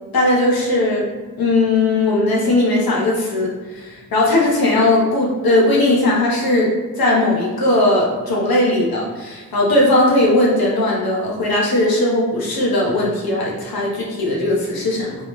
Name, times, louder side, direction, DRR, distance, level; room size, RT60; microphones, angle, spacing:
voice 1, 0.1-1.1 1.4-6.7 7.0-15.2, left 2 dB, 75° left, -4 dB, 1.2 m, -18 dB
3.8 x 3.4 x 3.1 m, 1.3 s
cardioid pair, 70°, 36 cm